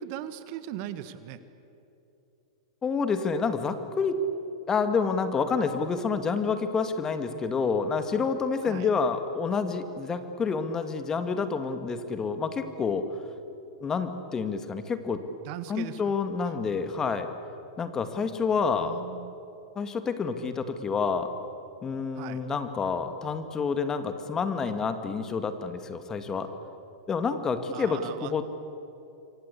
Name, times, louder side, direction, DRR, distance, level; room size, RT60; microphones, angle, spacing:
voice 1, 0.0-1.4 8.6-8.9 15.4-16.1 16.4-16.5 18.8-19.3 22.1-22.4 27.7-28.4, right 11 dB, 50° right, 12 dB, 1.6 m, -39 dB
voice 2, 2.8-4.2 4.7-13.1 13.8-15.2 15.7-17.3 17.8-19.0 19.8-21.3 21.8-26.5 27.1-28.4, left 5 dB, 20° left, 9 dB, 2.1 m, -28 dB
28.0 x 24.0 x 8.6 m, 2.9 s
hypercardioid pair, 105°, 2 cm